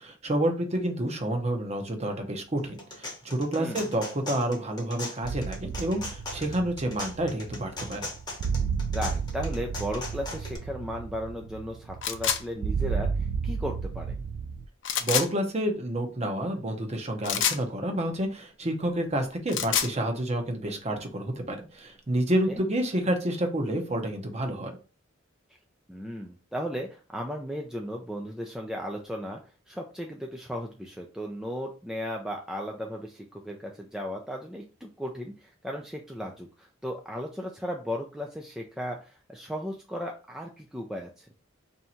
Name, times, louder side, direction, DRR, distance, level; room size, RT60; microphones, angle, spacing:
voice 1, 0.0-8.1 15.0-24.7, right 1 dB, 35° right, 4 dB, 0.8 m, -29 dB
sound 1, 2.6-10.6, left 2 dB, 20° left, 0.9 m, -39 dB
voice 2, 3.5-3.9 8.9-13.1 13.4-14.2 22.5-22.6 25.9-29.4 29.7-41.3, equal, 5° right, 0 dB, 0.4 m, -35 dB
sound 2, 5.2-14.6, right 5 dB, 75° right, 0.3 m, -32 dB
sound 3, 12.0-12.4 14.8-15.3 17.2-17.6 19.3-19.9, left 9 dB, 65° left, 0.5 m, -26 dB
3.4 x 2.7 x 4.3 m, 0.34 s
head